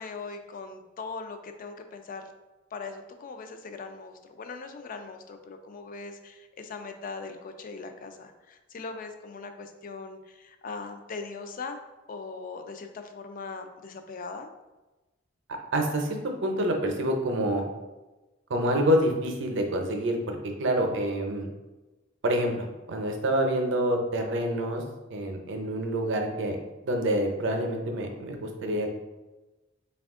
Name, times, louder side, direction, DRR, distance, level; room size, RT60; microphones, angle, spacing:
voice 1, 0.0-2.3 2.7-11.8 12.1-14.5, left 4 dB, 45° left, 7 dB, 0.4 m, -40 dB
voice 2, 15.7-16.2 16.4-17.6 18.5-21.5 22.2-24.8 25.1-26.6 26.8-28.9, right 1 dB, 65° right, 3 dB, 0.6 m, -27 dB
4.2 x 2.3 x 3.5 m, 1.1 s
head